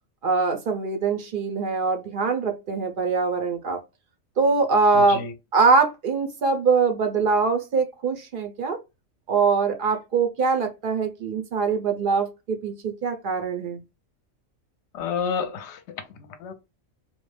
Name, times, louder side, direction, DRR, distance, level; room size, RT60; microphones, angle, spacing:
voice 1, 0.2-3.8 4.4-5.2 5.5-8.8 9.3-13.8, right 4 dB, 60° right, 0.6 m, -23 dB
voice 2, 4.9-5.3 14.9-16.5, left 6 dB, 65° left, 0.8 m, -30 dB
2.4 x 2.0 x 3.1 m
omnidirectional pair, 1.4 m